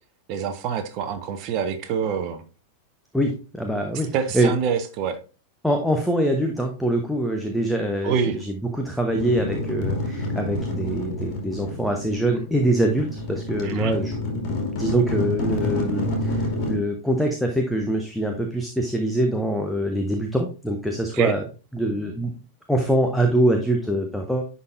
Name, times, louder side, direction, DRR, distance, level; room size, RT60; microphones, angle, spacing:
voice 1, 0.3-2.4 4.1-5.2 8.0-8.4 13.6-13.9 21.1-21.3, right 7 dB, 40° right, 7 dB, 0.9 m, -26 dB
voice 2, 3.1-4.5 5.6-21.4 21.7-22.3 22.7-24.4, right 1 dB, ahead, 3 dB, 0.9 m, -24 dB
sound 1, 9.1-16.7, left 1 dB, 40° left, 2.6 m, -28 dB
10.5 x 4.1 x 2.5 m, 0.33 s
figure-of-eight pair, 90°, 0 cm